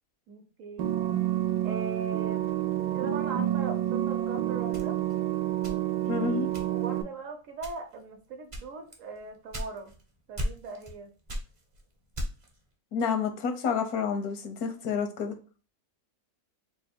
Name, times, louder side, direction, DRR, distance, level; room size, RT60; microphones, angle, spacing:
voice 1, 0.3-0.9 1.6-2.5 2.9-5.0 6.0-9.9 10.3-11.1, right 4 dB, 65° right, 5 dB, 1.0 m, -40 dB
sound 1, 0.8-7.0, right 13 dB, 90° right, 1.1 m, -29 dB
sound 2, 4.7-6.1 6.5-7.0 7.5-8.0 8.5-10.0 10.4-11.0 11.3-12.6, equal, 35° right, 0.6 m, -36 dB
voice 2, 6.1-6.5 12.9-15.3, left 6 dB, 85° left, 7 dB, 1.2 m, -29 dB
3.3 x 2.3 x 4.3 m, 0.36 s
omnidirectional pair, 1.6 m